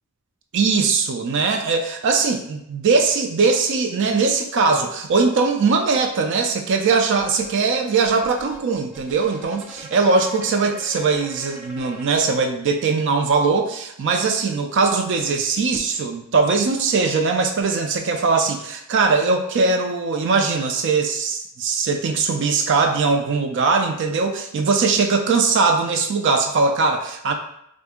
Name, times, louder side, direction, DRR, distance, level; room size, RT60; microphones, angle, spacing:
voice 1, 0.5-27.3, right 4 dB, 60° right, 5 dB, 0.4 m, -20 dB
sound 1, 7.1-12.4, right 1 dB, 5° right, 0.5 m, -41 dB
2.7 x 2.5 x 3.5 m, 0.75 s
head